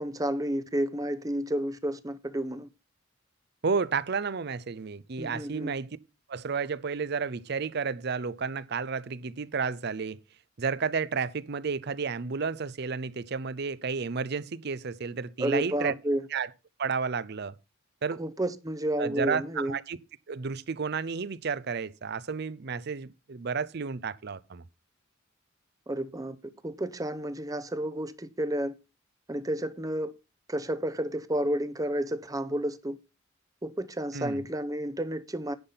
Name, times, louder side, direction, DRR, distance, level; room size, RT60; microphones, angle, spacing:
voice 1, 0.0-2.7 5.2-5.7 15.4-16.2 18.2-19.8 25.9-26.4 26.6-28.7 29.3-30.1 30.5-33.0 33.6-35.5, right 1 dB, 20° right, 0.7 m, -31 dB
voice 2, 3.6-5.9 6.3-10.2 10.6-15.9 16.3-16.5 16.8-17.6 18.0-18.2 19.0-20.0 20.3-24.6 34.1-34.4, right 5 dB, 55° right, 0.6 m, -31 dB
10.5 x 5.9 x 5.6 m
head